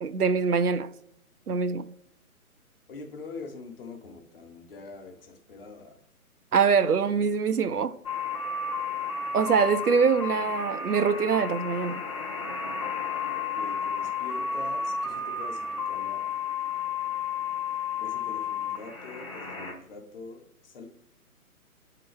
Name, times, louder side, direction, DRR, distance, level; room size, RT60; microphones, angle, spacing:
voice 1, 0.0-0.9 1.5-1.9 6.5-8.0 9.3-12.0, right 6 dB, 85° right, 0.6 m, -24 dB
voice 2, 2.9-5.9 13.3-16.3 18.0-20.9, left 4 dB, 40° left, 1.1 m, -44 dB
sound 1, 8.0-19.7, left 5 dB, 25° left, 0.6 m, -32 dB
9.1 x 3.8 x 3.3 m
figure-of-eight pair, 135°, 44 cm